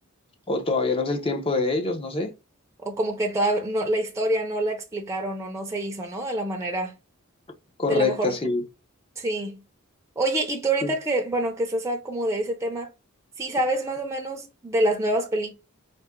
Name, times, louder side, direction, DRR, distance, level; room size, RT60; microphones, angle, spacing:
voice 1, 0.5-2.3 7.8-8.6 10.8-10.9, left 3 dB, 25° left, 0.7 m, -25 dB
voice 2, 2.8-6.9 7.9-8.4 9.2-9.6 10.2-12.9 13.4-15.5, right 1 dB, 15° right, 0.6 m, -26 dB
4.1 x 2.1 x 3.6 m
head